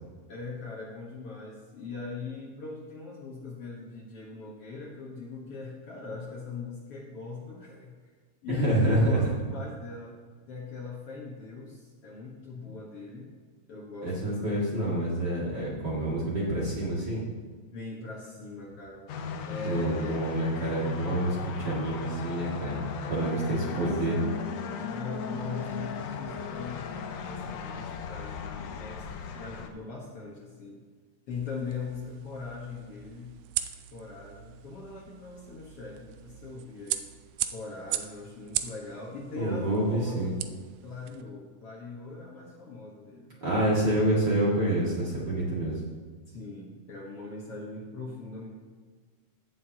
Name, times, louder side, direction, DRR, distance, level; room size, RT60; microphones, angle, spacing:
voice 1, 0.3-8.0 8.4-10.1 10.5-13.3 13.7-14.7 17.7-19.1 19.4-20.2 23.2-24.2 24.8-30.8 31.3-33.4 33.9-37.0 37.5-40.3 40.8-43.4 46.3-48.5, left 4 dB, 55° left, -3 dB, 2.0 m, -40 dB
voice 2, 8.5-9.2 14.0-17.3 19.6-24.2 39.3-40.3 43.4-45.8, right 1 dB, 35° right, -6 dB, 2.3 m, -27 dB
sound 1, 19.1-29.7, left 5 dB, 70° left, 1.7 m, -37 dB
sound 2, 31.3-41.2, right 13 dB, 80° right, 1.9 m, -39 dB
17.0 x 7.5 x 2.9 m, 1.5 s
omnidirectional pair, 3.8 m